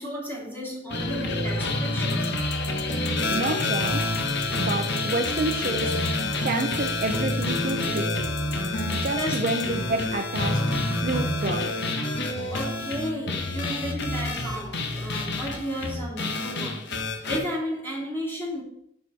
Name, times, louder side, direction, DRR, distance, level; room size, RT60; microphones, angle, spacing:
voice 1, 0.0-2.3 8.7-8.8 9.2-9.4 12.5-16.9 17.3-18.6, equal, 10° left, -5 dB, 2.8 m, -33 dB
sound 1, 0.9-17.4, left 2 dB, 60° left, 1.2 m, -28 dB
sound 2, 2.1-9.6, left 6 dB, 40° left, 0.9 m, -42 dB
voice 2, 3.3-4.1 4.6-6.2 6.4-8.3 8.9-10.8 11.0-11.7, right 3 dB, 45° right, 4 dB, 0.6 m, -29 dB
6.9 x 6.8 x 4.2 m, 0.72 s
head